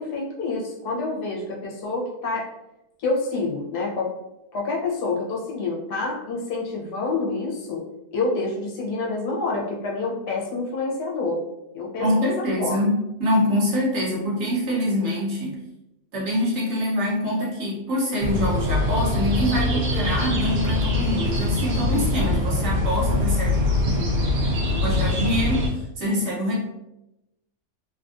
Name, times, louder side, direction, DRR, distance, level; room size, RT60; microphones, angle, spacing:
voice 1, 0.0-2.5 3.0-4.1 4.5-7.8 8.1-11.4 11.7-12.7, left 3 dB, 70° left, -3 dB, 1.3 m, -27 dB
voice 2, 12.0-15.6 16.1-24.1 24.4-26.6, equal, 55° right, -5 dB, 1.2 m, -25 dB
sound 1, 18.2-25.7, left 2 dB, 85° right, 1.4 m, -23 dB
3.3 x 2.4 x 2.4 m, 0.90 s
omnidirectional pair, 1.8 m